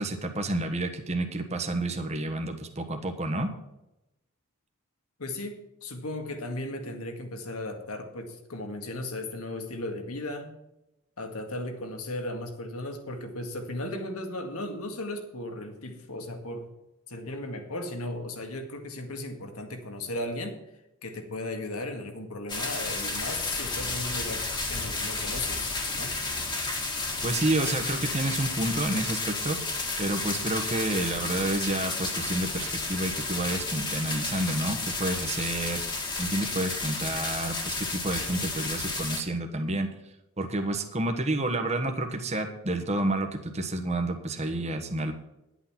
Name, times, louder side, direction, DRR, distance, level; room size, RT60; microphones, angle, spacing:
voice 1, 0.0-3.5 27.2-29.6 30.0-35.8 36.2-39.9 40.4-45.1, right 2 dB, 30° right, 5 dB, 1.2 m, -29 dB
voice 2, 5.2-10.5 11.2-16.7 17.1-20.7 21.0-26.2, left 1 dB, 75° left, 5 dB, 1.9 m, -36 dB
sound 1, 22.5-39.2, left 3 dB, 20° left, 1.7 m, -32 dB
11.0 x 8.4 x 5.9 m, 0.91 s
head